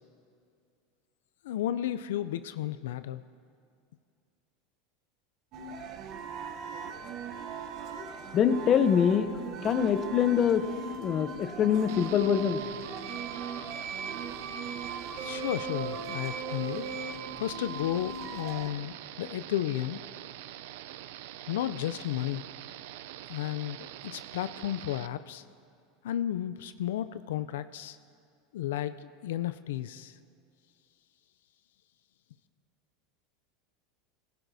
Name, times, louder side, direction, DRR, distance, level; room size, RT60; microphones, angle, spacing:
voice 1, 1.4-3.2 15.1-16.9 17.4-20.0 21.5-22.4 23.3-25.4 26.0-28.0 28.5-30.2, left 12 dB, 85° left, 13 dB, 0.3 m, -33 dB
sound 1, 5.5-18.7, right 5 dB, 45° right, 0.8 m, -39 dB
voice 2, 8.0-12.6, left 8 dB, 35° left, 12 dB, 0.6 m, -25 dB
sound 2, 11.9-25.1, right 13 dB, 75° right, 0.4 m, -45 dB
17.0 x 15.0 x 2.7 m, 2.4 s
supercardioid pair, 135°, 0 cm